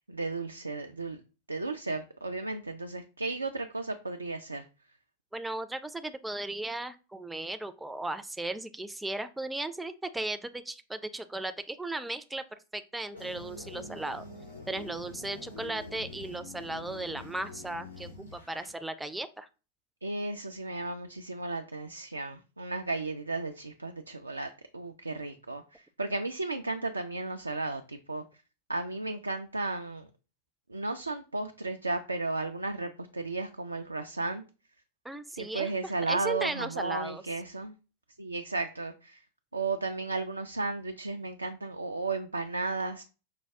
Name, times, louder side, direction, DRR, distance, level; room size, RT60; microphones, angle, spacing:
voice 1, 0.1-1.2 1.5-4.7 20.0-28.2 28.7-30.1 30.7-34.4 35.4-37.7 38.2-39.2 39.5-43.0, right 3 dB, 80° right, 0.3 m, -34 dB
voice 2, 5.3-12.4 12.7-14.2 14.7-19.5 35.0-37.2, right 2 dB, 5° right, 0.4 m, -36 dB
sound 1, 13.1-18.7, left 2 dB, 75° left, 2.5 m, -45 dB
5.5 x 2.2 x 3.4 m
figure-of-eight pair, 90°, 0 cm